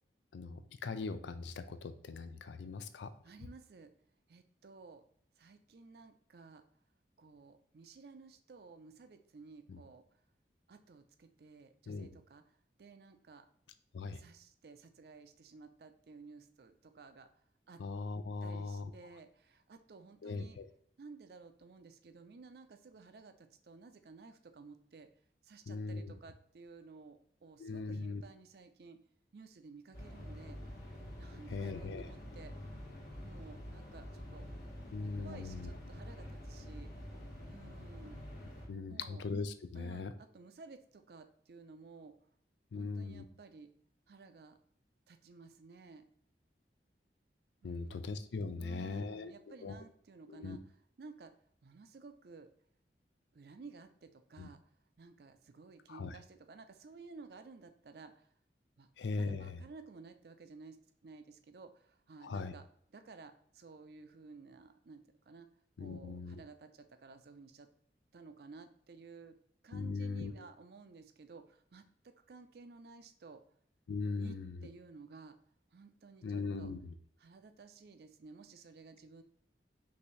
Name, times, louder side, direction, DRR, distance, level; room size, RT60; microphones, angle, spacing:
voice 1, 0.3-3.1 9.7-9.8 11.9-12.1 13.9-14.2 17.8-18.9 20.2-20.7 25.7-26.1 27.6-28.2 31.5-32.1 34.9-35.7 38.7-40.1 42.7-43.2 47.6-49.7 50.3-50.6 54.4-54.5 55.9-56.2 59.0-59.6 62.2-62.6 65.8-66.4 69.7-70.3 73.9-74.6 76.2-76.9, left 4 dB, 85° left, 11 dB, 0.4 m, -40 dB
voice 2, 3.2-3.9 4.3-5.0 5.4-6.6 7.2-10.0 10.7-12.4 12.8-13.5 14.1-17.3 17.7-17.8 18.4-20.6 21.0-25.1 25.4-29.0 29.3-30.6 31.2-32.5 33.2-34.5 35.2-36.9 37.5-38.2 38.9-39.2 39.7-42.2 42.7-43.7 44.1-44.6 45.1-46.0 47.6-48.0 48.6-50.6 51.0-51.3 51.6-52.5 53.3-54.6 55.0-58.3 58.8-58.9 59.1-60.8 61.0-62.7 62.9-65.5 65.8-67.7 68.1-69.4 69.6-73.4 74.2-75.4 75.7-76.7 77.2-79.2, right 4 dB, 60° right, 9 dB, 0.4 m, -54 dB
sound 1, 29.9-38.7, equal, 65° left, 1.8 m, -47 dB
5.6 x 2.6 x 3.1 m, 0.64 s
head